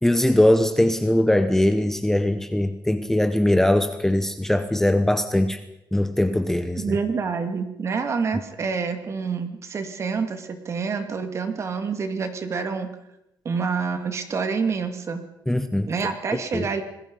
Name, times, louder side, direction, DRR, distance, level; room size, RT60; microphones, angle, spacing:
voice 1, 0.0-5.6 5.9-6.9 15.5-15.9 16.5-16.7, left 1 dB, 5° left, 9 dB, 1.0 m, -21 dB
voice 2, 6.8-12.9 13.4-15.2 15.9-16.8, right 5 dB, 35° right, 8 dB, 2.3 m, -27 dB
25.5 x 20.5 x 5.5 m, 0.87 s
cardioid pair, 160°, 8 cm